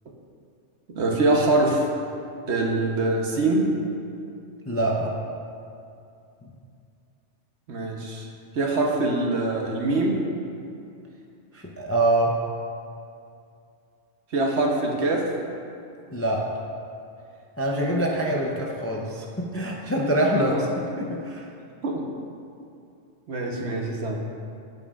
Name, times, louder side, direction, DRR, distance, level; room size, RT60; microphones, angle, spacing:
voice 1, 0.9-1.8 2.5-3.7 7.7-8.3 8.5-10.3 14.3-15.4 20.3-20.6 21.8-22.0 23.3-24.2, right 2 dB, 70° right, 0 dB, 1.2 m, -24 dB
voice 2, 4.7-5.1 11.5-12.4 16.1-16.5 17.6-20.5 21.0-21.4, right 1 dB, 15° left, -2 dB, 0.5 m, -24 dB
15.0 x 5.3 x 2.4 m, 2.5 s
omnidirectional pair, 1.2 m